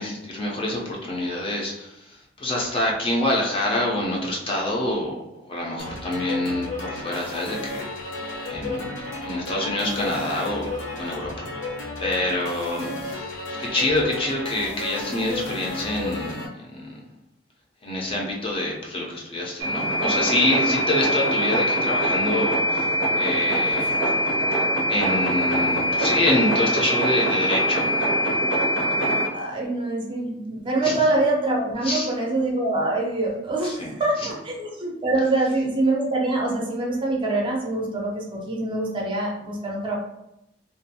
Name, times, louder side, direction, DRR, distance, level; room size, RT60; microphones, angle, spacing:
voice 1, 0.0-7.8 8.5-10.7 11.0-11.5 12.0-17.0 17.8-24.0 24.9-27.9 30.8-30.9 31.8-32.1 33.6-33.9, left 1 dB, 30° left, -2 dB, 0.4 m, -26 dB
sound 1, 5.8-16.5, left 2 dB, 75° left, 0.7 m, -33 dB
sound 2, 19.6-29.3, equal, 80° right, 0.5 m, -23 dB
voice 2, 29.3-39.9, right 2 dB, 25° right, -2 dB, 0.5 m, -25 dB
2.5 x 2.3 x 2.6 m, 0.84 s
head